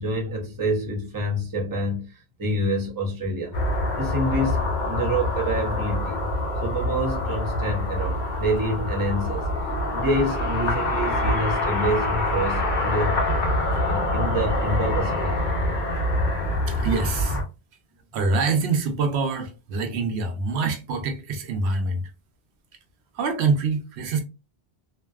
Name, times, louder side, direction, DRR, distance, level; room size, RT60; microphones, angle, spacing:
voice 1, 0.0-3.6 4.0-6.3 6.6-9.5 9.9-13.2 13.8-15.4, right 1 dB, 25° right, 0.5 m, -27 dB
sound 1, 3.5-17.4, left 1 dB, 50° left, 0.8 m, -25 dB
voice 2, 16.7-17.4 18.1-22.0 23.1-24.2, right 4 dB, 85° right, 0.9 m, -25 dB
2.5 x 2.2 x 2.2 m
omnidirectional pair, 1.1 m